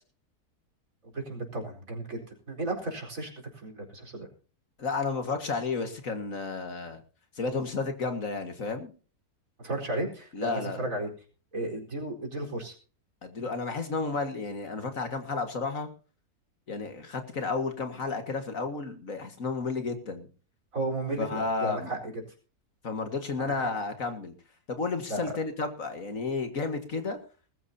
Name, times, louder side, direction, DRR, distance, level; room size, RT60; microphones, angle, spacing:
voice 1, 1.1-2.2 2.5-4.3 9.6-11.1 11.5-12.7 20.7-22.0 23.4-23.7 25.1-25.3, right 1 dB, 55° right, 1 dB, 4.9 m, -34 dB
voice 2, 4.8-7.0 7.4-8.9 10.3-10.8 13.2-15.9 16.7-20.3 21.2-21.9 22.8-24.3 24.7-27.2, left 4 dB, 55° left, 7 dB, 2.2 m, -32 dB
21.0 x 13.5 x 2.8 m, 0.38 s
omnidirectional pair, 1.7 m